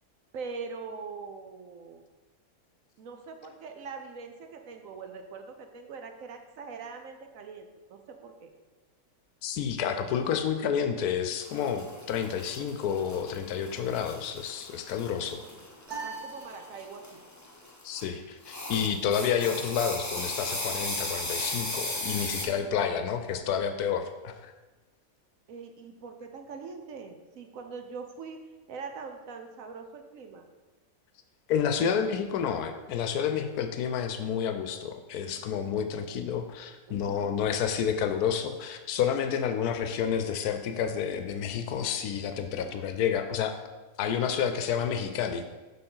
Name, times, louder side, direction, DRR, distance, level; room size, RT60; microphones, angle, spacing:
voice 1, 0.3-2.0 3.0-8.5 15.3-15.7 16.0-17.2 22.4-23.0 25.5-28.4 28.7-30.4 36.9-37.4 42.3-42.8, right 5 dB, 70° right, 5 dB, 1.0 m, -43 dB
voice 2, 9.4-15.4 17.8-24.5 31.5-43.5 44.0-45.5, left 8 dB, 85° left, 7 dB, 1.1 m, -30 dB
sound 1, 11.4-18.1 18.4-22.4, left 2 dB, 15° left, 0.6 m, -37 dB
sound 2, 15.9-17.3, right 4 dB, 85° right, 1.9 m, -41 dB
6.8 x 3.8 x 5.6 m, 1.2 s
omnidirectional pair, 1.6 m